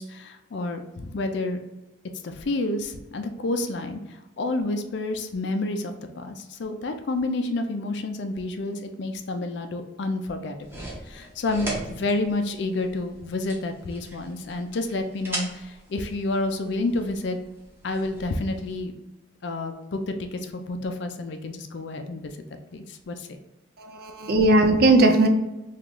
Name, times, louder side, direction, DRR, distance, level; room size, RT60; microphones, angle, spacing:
voice 1, 0.0-1.6 2.2-17.4 17.8-18.9 19.4-22.3 22.7-23.3 24.7-24.8, left 2 dB, 60° left, 6 dB, 0.4 m, -29 dB
sound 1, 10.6-18.8, right 1 dB, 10° right, 0.7 m, -39 dB
voice 2, 23.8-25.3, right 2 dB, 50° right, 5 dB, 0.4 m, -18 dB
3.0 x 2.4 x 3.6 m, 1.0 s
head